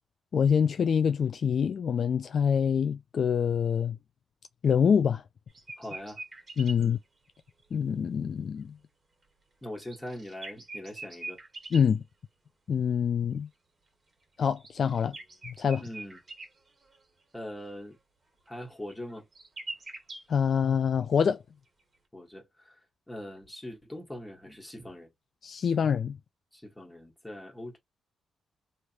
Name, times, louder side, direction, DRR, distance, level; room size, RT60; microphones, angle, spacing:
voice 1, 0.3-4.0 4.6-5.2 6.6-7.0 7.7-8.7 11.7-12.0 12.7-13.5 14.4-15.2 15.4-15.8 20.3-21.4 25.4-26.2, left 7 dB, 55° left, 0.3 m, -25 dB
sound 1, 5.5-6.9 7.7-7.8 9.7-11.9 14.4-16.5 16.8-17.0 18.5-18.6 18.9-20.2, right 2 dB, 35° right, 1.4 m, -43 dB
voice 2, 5.8-6.2 6.8-7.0 9.6-11.4 15.8-16.2 17.3-18.0 18.5-19.3 22.1-22.8 23.1-25.1 26.5-27.8, left 1 dB, 5° left, 1.7 m, -42 dB
3.2 x 2.5 x 3.0 m
cardioid pair, 120°, 0 cm